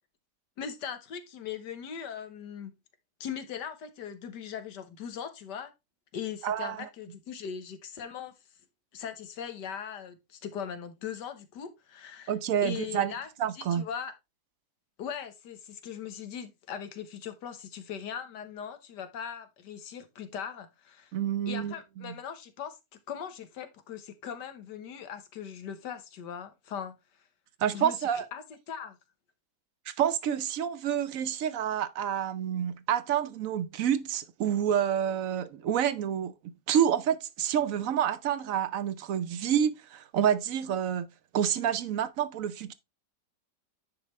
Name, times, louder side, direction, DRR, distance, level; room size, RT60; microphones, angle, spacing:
voice 1, 0.6-2.7 3.2-5.7 6.1-8.3 8.9-12.3 12.6-14.1 15.0-21.1 21.5-22.8 23.1-26.9 27.7-29.0, left 8 dB, 80° left, 1.7 m, -40 dB
voice 2, 6.4-6.9 12.3-13.1 13.4-13.8 21.1-22.1 27.6-28.3 29.9-41.1 41.3-42.7, right 9 dB, 65° right, 0.9 m, -28 dB
9.9 x 4.7 x 3.2 m
omnidirectional pair, 1.8 m